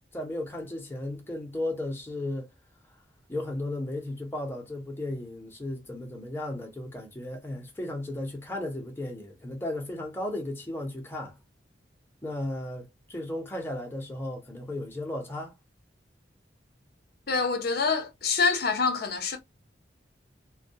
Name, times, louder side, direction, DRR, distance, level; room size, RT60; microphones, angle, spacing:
voice 1, 0.1-2.5 3.3-11.4 12.2-15.5, left 1 dB, 10° left, 0.6 m, -35 dB
voice 2, 17.3-19.4, left 4 dB, 55° left, 0.7 m, -26 dB
2.2 x 2.1 x 2.6 m
head